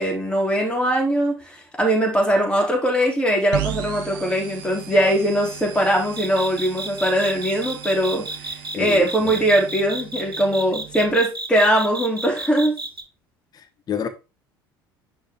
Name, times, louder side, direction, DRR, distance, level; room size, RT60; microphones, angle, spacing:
voice 1, 0.0-12.8, right 1 dB, 10° left, 3.1 m, -21 dB
sound 1, 3.5-11.1, right 11 dB, 60° right, 1.6 m, -36 dB
sound 2, 6.2-13.0, right 2 dB, 90° right, 0.8 m, -31 dB
voice 2, 8.7-9.4 13.5-14.1, left 7 dB, 35° left, 1.3 m, -29 dB
10.5 x 3.9 x 3.7 m
figure-of-eight pair, 65°, 12 cm